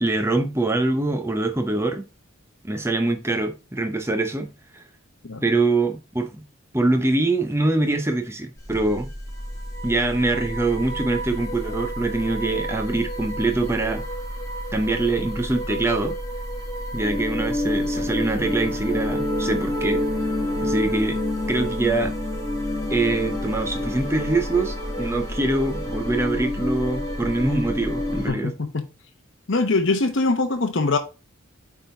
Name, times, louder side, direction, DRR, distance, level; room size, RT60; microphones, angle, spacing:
voice 1, 0.0-2.0 2.6-4.8 5.4-6.4 6.7-9.1 9.8-14.0 14.7-16.2 16.9-20.0 20.6-21.2 21.5-22.1 22.9-28.5, right 2 dB, 10° right, 0.8 m, -24 dB
sound 1, 8.6-28.3, left 1 dB, 15° left, 1.4 m, -28 dB
voice 2, 28.3-28.9 29.5-31.0, left 3 dB, 65° left, 0.9 m, -22 dB
8.8 x 3.8 x 3.8 m
head